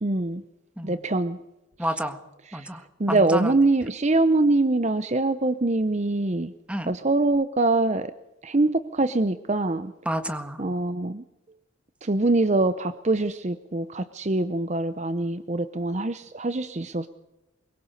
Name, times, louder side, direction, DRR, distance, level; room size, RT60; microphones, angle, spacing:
voice 1, 0.0-0.4 0.8-1.4 2.5-2.7 3.0-6.5 6.9-8.1 8.4-9.9 10.6-11.2 12.0-17.1, right 2 dB, 35° right, 12 dB, 0.7 m, -24 dB
voice 2, 1.8-2.2 2.5-3.5 6.7-6.9 10.0-10.6, right 1 dB, 5° right, 8 dB, 1.7 m, -30 dB
24.5 x 23.0 x 6.7 m, 0.98 s
head